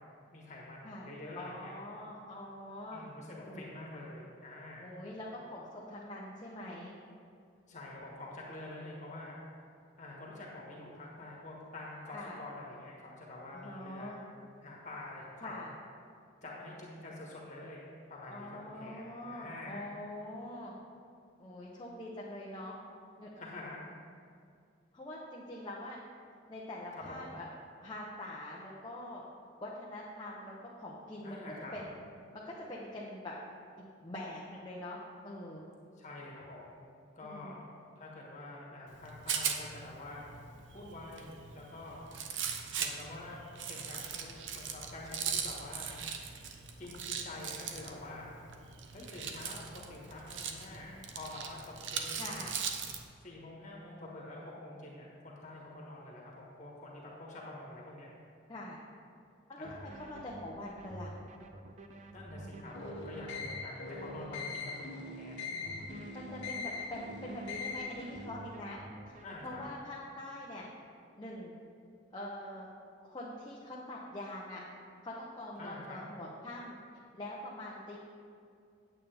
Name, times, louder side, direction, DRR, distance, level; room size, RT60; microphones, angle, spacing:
voice 1, 0.3-1.7 2.9-4.9 7.7-9.4 10.0-14.2 14.6-15.7 16.4-17.8 18.1-19.9 23.4-23.9 26.9-27.4 31.2-31.8 36.0-36.8 37.1-37.6 38.0-40.3 40.7-42.0 42.8-43.4 43.7-46.0 46.8-48.3 48.9-52.2 53.2-58.1 59.6-59.9 62.1-65.9 69.2-69.6 75.6-76.0, left 2 dB, 40° left, -4 dB, 1.5 m, -47 dB
voice 2, 0.8-3.0 3.4-3.7 4.8-7.0 12.1-12.4 13.5-14.2 15.4-15.7 18.3-20.7 21.4-22.8 23.2-23.3 24.9-26.0 26.5-27.5 27.8-29.2 29.6-31.4 31.7-32.0 32.3-33.4 33.8-35.0 35.2-35.6 37.2-37.5 52.2-52.6 58.5-58.8 59.5-61.1 66.1-68.8 69.4-70.7 71.1-71.5 72.1-72.7 73.0-74.6 75.0-76.8 77.1-78.0, left 1 dB, 25° left, -5 dB, 0.9 m, -44 dB
Rattle, 38.9-53.0, right 7 dB, 85° right, 0.7 m, -40 dB
sound 1, 59.6-63.6 65.6-69.6, right 1 dB, 40° right, 0.6 m, -50 dB
sound 2, 62.7-68.3, left 3 dB, 85° left, 1.4 m, -41 dB
9.0 x 8.5 x 3.5 m, 2.3 s
head